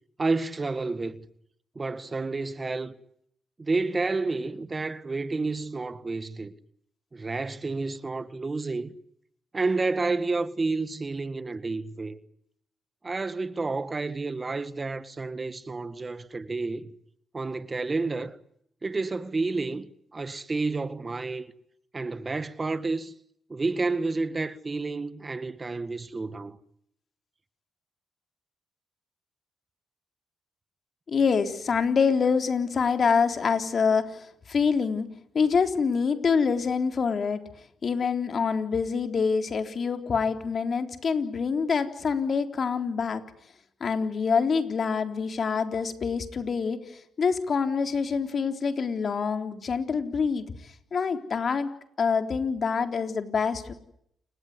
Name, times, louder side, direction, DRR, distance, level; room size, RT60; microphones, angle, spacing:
voice 1, 0.2-1.2 1.8-2.9 3.6-6.5 7.1-9.0 9.5-12.2 13.0-16.9 17.3-18.4 18.8-21.5 21.9-23.1 23.5-26.6, right 3 dB, 30° right, 1.8 m, -30 dB
voice 2, 31.1-37.4 37.8-43.2 43.8-51.7 52.0-53.7, left 5 dB, 55° left, 3.7 m, -26 dB
29.0 x 16.5 x 9.8 m
supercardioid pair, 65°, 0 cm